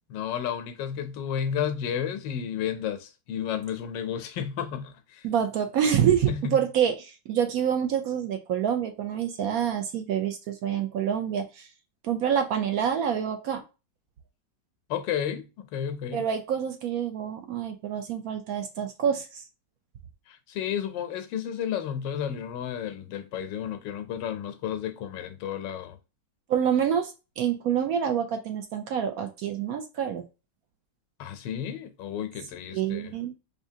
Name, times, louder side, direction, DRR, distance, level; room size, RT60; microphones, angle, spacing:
voice 1, 0.1-5.3 6.3-6.6 14.9-16.3 20.3-26.0 31.2-33.1, left 9 dB, 85° left, 1.3 m, -32 dB
voice 2, 5.2-11.7 12.0-13.6 16.1-19.3 26.5-30.2 32.7-33.3, right 8 dB, 70° right, 0.9 m, -27 dB
4.9 x 2.7 x 2.7 m
omnidirectional pair, 1.9 m